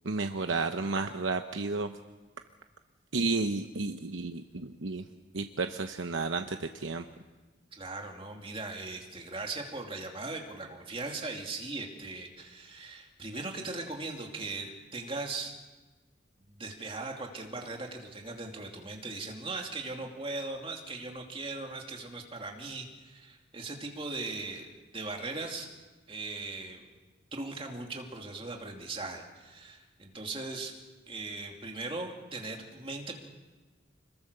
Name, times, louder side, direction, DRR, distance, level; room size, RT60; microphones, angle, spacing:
voice 1, 0.0-1.9 3.1-5.1 5.3-7.0, right 3 dB, 85° right, 6 dB, 1.0 m, -32 dB
voice 2, 7.7-15.5 16.4-25.7 26.1-26.8 27.3-30.7 31.1-33.2, right 3 dB, 30° right, 2 dB, 2.7 m, -39 dB
26.5 x 21.5 x 6.8 m, 1.3 s
head